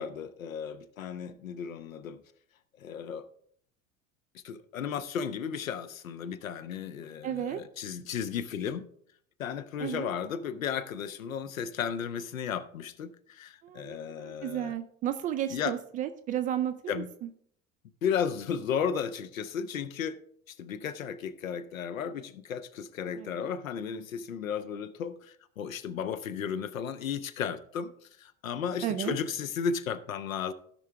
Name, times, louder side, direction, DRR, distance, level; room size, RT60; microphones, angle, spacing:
voice 1, 0.0-2.2 2.8-3.3 4.3-8.9 9.4-14.8 15.5-15.7 16.9-17.1 18.0-20.2 20.5-27.9 28.2-30.5, left 7 dB, 70° left, 12 dB, 0.8 m, -34 dB
voice 2, 7.2-7.6 9.8-10.1 13.6-17.0 23.2-23.5 28.8-29.2, right 11 dB, 20° right, 9 dB, 0.3 m, -33 dB
16.0 x 5.6 x 3.4 m, 0.63 s
figure-of-eight pair, 75°, 42 cm